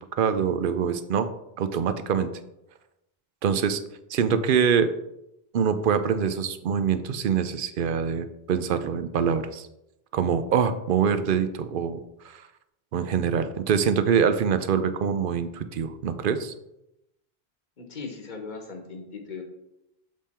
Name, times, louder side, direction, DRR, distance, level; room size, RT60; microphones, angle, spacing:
voice 1, 0.2-1.3 1.6-2.3 3.4-3.8 4.1-4.9 5.5-9.7 10.1-12.5 12.9-16.5, right 7 dB, 65° right, 11 dB, 0.7 m, -24 dB
voice 2, 17.8-19.4, left 4 dB, 50° left, 3 dB, 1.2 m, -38 dB
7.4 x 3.6 x 4.2 m, 0.86 s
omnidirectional pair, 1.0 m